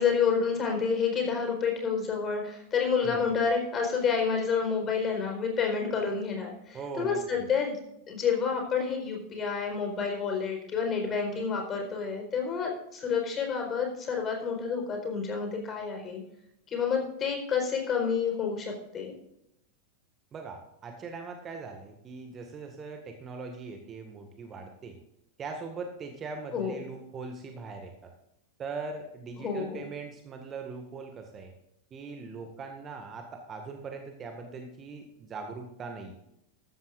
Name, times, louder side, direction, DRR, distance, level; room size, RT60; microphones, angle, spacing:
voice 1, 0.0-7.8 8.1-16.2 16.7-19.2 26.5-26.7 29.4-29.8, left 6 dB, 25° left, 3 dB, 4.4 m, -29 dB
voice 2, 6.7-7.4 20.3-25.0 25.4-28.1 28.6-31.5 31.9-36.1, right 4 dB, 25° right, 4 dB, 1.8 m, -41 dB
14.0 x 13.5 x 2.5 m, 0.79 s
figure-of-eight pair, 90°, 0 cm